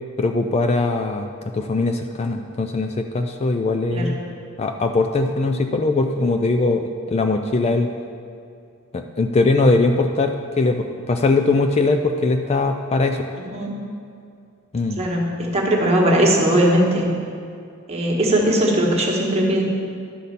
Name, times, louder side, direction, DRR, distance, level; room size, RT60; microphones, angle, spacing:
voice 1, 0.2-1.3 1.5-4.2 4.6-7.9 8.9-13.3 14.7-15.0, left 3 dB, 30° left, 5 dB, 0.4 m, -20 dB
voice 2, 15.0-17.1 17.9-19.6, right 1 dB, 30° right, -2 dB, 1.4 m, -19 dB
11.5 x 4.2 x 6.8 m, 2.4 s
head